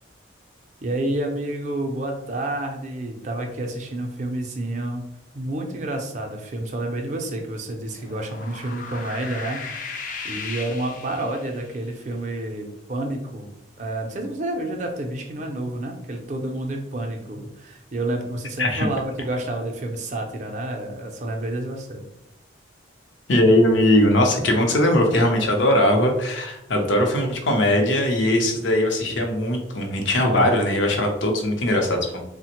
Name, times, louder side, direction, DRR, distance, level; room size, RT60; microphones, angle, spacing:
voice 1, 0.8-5.0 5.3-13.5 13.8-22.0, right 1 dB, 40° right, 3 dB, 0.4 m, -29 dB
sound 1, 8.0-11.7, left 5 dB, 45° left, 0.4 m, -36 dB
voice 2, 23.3-32.2, left 1 dB, 80° left, 1 dB, 0.7 m, -20 dB
3.3 x 2.1 x 2.8 m, 0.83 s
head